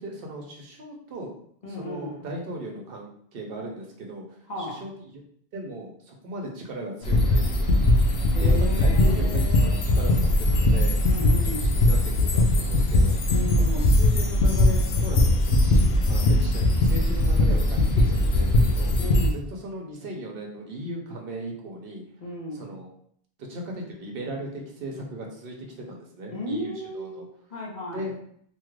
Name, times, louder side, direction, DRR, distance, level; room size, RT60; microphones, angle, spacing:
voice 1, 0.0-1.3 1.7-5.2 5.5-7.7 8.4-11.2 11.4-13.2 13.5-18.9 19.3-22.0 22.5-22.9 23.4-27.2 27.9-28.1, right 1 dB, 65° right, 0 dB, 0.9 m, -37 dB
voice 2, 1.6-2.3 4.5-4.8 8.3-9.8 11.0-11.8 13.3-13.9 18.9-19.5 22.2-22.8 26.3-28.1, left 1 dB, 45° left, -4 dB, 0.9 m, -35 dB
sound 1, 7.0-19.3, left 1 dB, 90° left, 0.8 m, -20 dB
2.8 x 2.3 x 3.1 m, 0.65 s
omnidirectional pair, 1.0 m